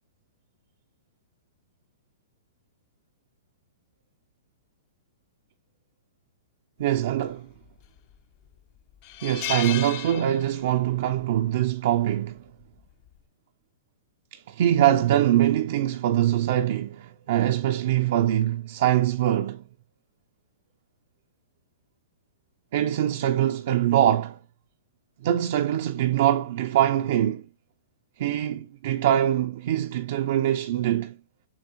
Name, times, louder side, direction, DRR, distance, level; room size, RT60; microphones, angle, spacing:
voice 1, 6.8-7.5 9.2-12.4 14.3-19.6 22.7-24.4 25.2-27.5 28.2-31.2, right 12 dB, 60° right, 0.3 m, -23 dB
sound 1, 7.6-8.1 8.5-8.6 9.0-10.8 11.1-11.4 12.6-12.9, left 12 dB, 40° left, 0.5 m, -34 dB
6.9 x 2.4 x 2.8 m
hypercardioid pair, 120°, 0 cm